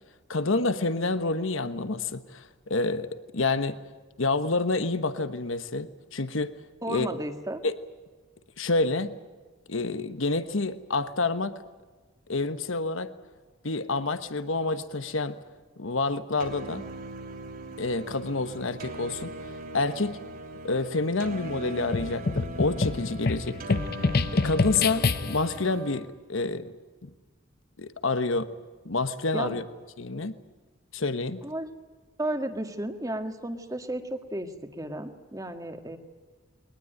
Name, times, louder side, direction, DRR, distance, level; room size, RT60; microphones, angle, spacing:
voice 1, 0.3-3.8 4.2-6.6 6.9-7.1 7.6-7.7 8.6-9.1 9.7-11.6 12.3-13.1 13.6-15.4 15.8-16.9 17.8-19.3 19.7-20.2 20.6-23.8 24.3-26.7 27.0-27.1 27.8-28.5 28.8-29.6 30.0-30.3 30.9-31.4, left 3 dB, 70° left, 12 dB, 1.2 m, -28 dB
voice 2, 6.8-7.6 29.3-29.6 31.4-31.7 32.2-36.0, right 1 dB, 15° right, 7 dB, 1.7 m, -33 dB
sound 1, 16.4-26.0, right 1 dB, 45° right, 3.1 m, -40 dB
sound 2, 21.9-25.6, left 3 dB, 45° left, 0.7 m, -27 dB
22.0 x 19.5 x 9.2 m, 1.4 s
head